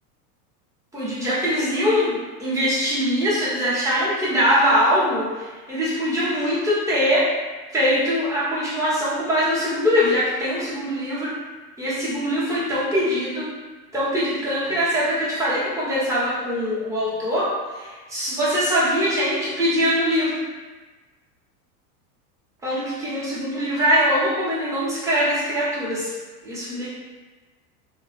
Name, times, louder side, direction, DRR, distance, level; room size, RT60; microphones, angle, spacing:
voice 1, 0.9-7.4 7.7-11.4 11.8-13.5 13.9-20.4 22.6-26.1 26.4-26.9, equal, 5° right, -9 dB, 0.7 m, -22 dB
2.7 x 2.0 x 3.1 m, 1.3 s
supercardioid pair, 120°, 46 cm